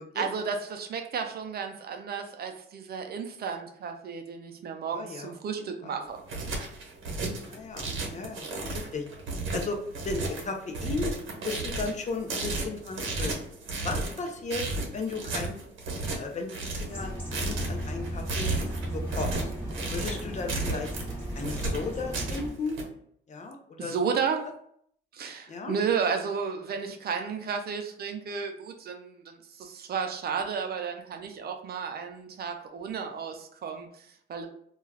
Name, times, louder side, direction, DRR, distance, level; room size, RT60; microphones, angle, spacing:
voice 1, 0.2-6.2 23.8-24.5 25.1-34.5, right 6 dB, 50° right, 5 dB, 0.5 m, -33 dB
voice 2, 4.9-5.3 5.6-6.0 7.4-8.5 8.7-9.0 9.5-9.8 10.0-11.1 11.4-13.4 13.8-14.6 14.9-15.6 16.1-17.1 17.4-18.5 18.9-19.3 19.9-20.9 21.3-22.8 23.3-24.1 25.5-25.8, left 3 dB, 35° left, 4 dB, 0.5 m, -35 dB
sound 1, 6.0-22.8, right 3 dB, 80° right, 0.9 m, -33 dB
sound 2, 16.9-22.5, equal, 10° left, 1.1 m, -36 dB
2.3 x 2.3 x 3.2 m, 0.66 s
cardioid pair, 90°, 20 cm